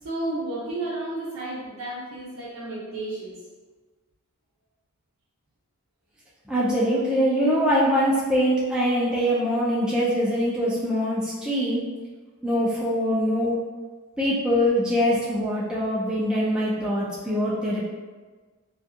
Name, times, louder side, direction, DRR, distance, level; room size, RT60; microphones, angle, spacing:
voice 1, 0.0-3.4, right 2 dB, 75° right, -10 dB, 0.6 m, -32 dB
voice 2, 6.5-11.8 12.4-13.6 14.2-17.8, equal, 5° right, -8 dB, 0.3 m, -23 dB
2.6 x 2.3 x 2.4 m, 1.4 s
head